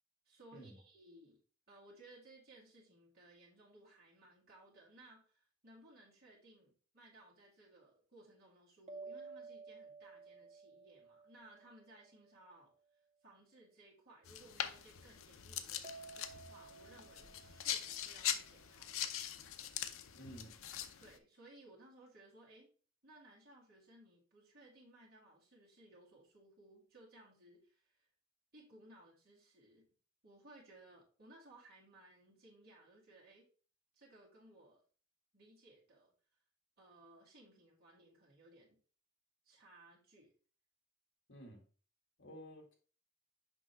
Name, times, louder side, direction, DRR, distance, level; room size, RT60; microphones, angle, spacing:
voice 1, 0.2-1.4 1.7-12.7 13.2-19.2 21.0-22.7 23.0-28.1 28.5-29.9 30.2-33.5 33.9-34.8 35.3-36.1 36.8-38.8 39.4-40.3, right 1 dB, 50° right, 2.4 m, -61 dB
sound 1, 8.9-12.4 15.8-18.9, right 4 dB, 35° right, 0.8 m, -54 dB
sound 2, 14.3-21.2, left 10 dB, 80° left, 0.7 m, -42 dB
voice 2, 20.2-20.5 41.3-41.6 42.2-42.7, equal, 65° left, 2.2 m, -52 dB
6.2 x 5.2 x 3.4 m
head